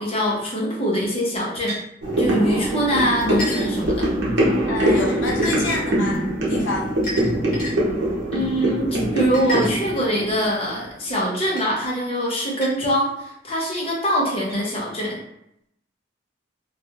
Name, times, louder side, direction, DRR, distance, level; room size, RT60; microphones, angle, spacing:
voice 1, 0.0-1.8 2.2-4.1 8.3-15.2, equal, 30° left, -3 dB, 0.7 m, -23 dB
sound 1, 1.7-1.8 3.4-3.7 5.3-5.6 7.0-7.7 9.3-10.2 11.6-11.7 12.6-12.7 13.5-13.6 14.5-14.6, left 1 dB, 50° left, 1.0 m, -31 dB
sound 2, 2.0-11.4 11.7-11.8, right 1 dB, 75° right, 0.7 m, -23 dB
voice 2, 4.7-6.2 6.5-6.8, left 2 dB, 85° left, -1 dB, 0.7 m, -28 dB
2.9 x 2.3 x 2.4 m, 0.77 s
head